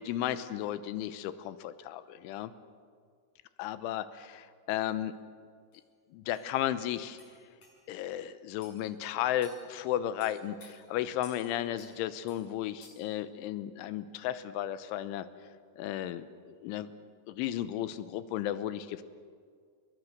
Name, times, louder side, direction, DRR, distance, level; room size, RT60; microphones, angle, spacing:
voice 1, 0.0-2.5 3.6-5.1 6.1-7.2 7.9-15.3 15.8-16.9 17.3-19.0, left 12 dB, 85° left, 13 dB, 3.3 m, -34 dB
sound 1, 5.7-5.8 6.3-6.5 7.2-7.3 7.6-7.7 8.6-8.8 9.4-9.6 10.2-10.7 11.2-11.4 11.8-11.9 12.3-12.4 12.8-13.1, left 2 dB, 35° left, 8.2 m, -53 dB
30.0 x 21.5 x 6.6 m, 2.1 s
omnidirectional pair, 5.5 m